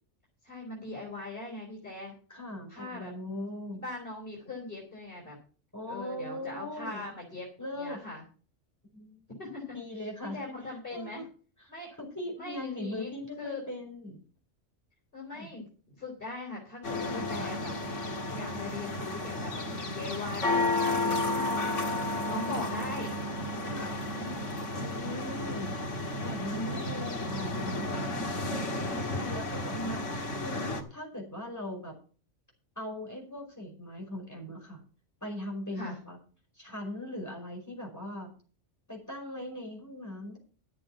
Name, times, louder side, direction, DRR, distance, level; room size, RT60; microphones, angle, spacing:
voice 1, 0.4-2.1 2.7-3.1 3.7-5.4 5.9-7.5 7.8-8.2 9.4-9.8 10.3-11.3 11.7-11.9 12.4-13.1 13.4-13.6 15.1-18.1 18.3-19.5 19.8-23.2 24.1-24.6 26.2-27.0 29.7-30.1 35.7-36.0, left 2 dB, 50° left, -2 dB, 4.4 m, -40 dB
voice 2, 2.3-3.8 5.7-7.0 7.6-8.0 8.9-9.2 9.7-11.3 11.6-14.2 15.3-15.5 17.1-17.6 23.7-24.0 24.7-25.8 26.2-28.1 28.8-30.0 30.4-31.9 32.7-34.8 35.2-36.2 36.5-38.3 38.9-40.4, left 1 dB, 15° left, 0 dB, 5.2 m, -40 dB
sound 1, 16.8-30.8, left 2 dB, 85° left, 2.1 m, -32 dB
12.0 x 7.8 x 6.0 m, 0.38 s
omnidirectional pair, 1.2 m